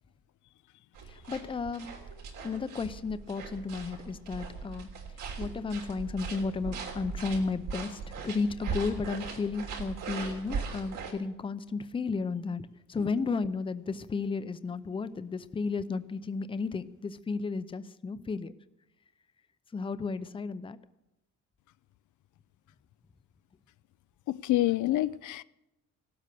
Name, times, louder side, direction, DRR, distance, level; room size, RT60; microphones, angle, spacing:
sound 1, 0.9-11.1, right 5 dB, 75° right, 3.4 m, -39 dB
voice 1, 1.1-1.9 2.4-4.9 5.4-18.5 19.7-20.8, left 4 dB, 15° left, 0.6 m, -33 dB
voice 2, 24.3-25.4, left 15 dB, 65° left, 0.5 m, -27 dB
17.0 x 12.5 x 6.8 m
cardioid pair, 150°, 32 cm